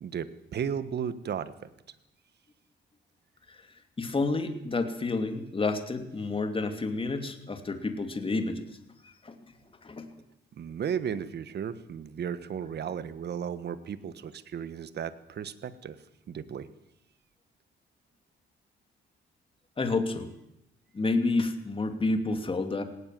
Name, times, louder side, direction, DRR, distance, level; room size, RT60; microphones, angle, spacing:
voice 1, 0.0-1.5 10.5-16.0 16.3-16.7, right 8 dB, 55° right, 14 dB, 1.4 m, -34 dB
voice 2, 4.0-8.7 9.2-9.3 9.8-10.1 19.8-20.3 20.9-22.8, left 3 dB, 25° left, 7 dB, 2.8 m, -29 dB
18.5 x 18.0 x 7.7 m, 0.82 s
cardioid pair, 90°, 20 cm